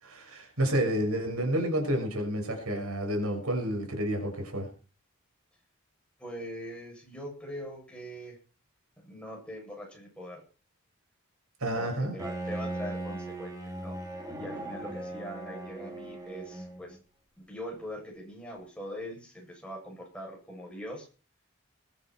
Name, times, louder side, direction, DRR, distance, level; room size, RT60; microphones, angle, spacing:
voice 1, 0.0-4.7 11.6-12.2, right 1 dB, 85° right, 4 dB, 6.0 m, -30 dB
voice 2, 6.2-8.4 9.0-10.4 11.7-13.5 13.8-14.0 14.4-17.0 17.4-21.1, equal, 5° left, -2 dB, 7.9 m, -42 dB
Bowed string instrument, 12.2-17.0, right 1 dB, 15° right, 3.3 m, -38 dB
21.0 x 12.0 x 4.6 m, 0.36 s
head